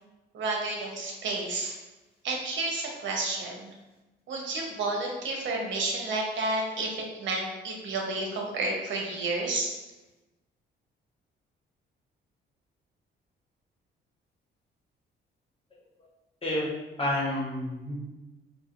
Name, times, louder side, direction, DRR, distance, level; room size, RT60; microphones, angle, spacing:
voice 1, 0.3-1.7 2.2-3.7 4.3-9.7, right 2 dB, 70° right, 0 dB, 0.9 m, -31 dB
voice 2, 17.0-17.9, left 1 dB, 30° left, -5 dB, 1.3 m, -29 dB
4.8 x 2.4 x 2.5 m, 1.1 s
cardioid pair, 90°, 20 cm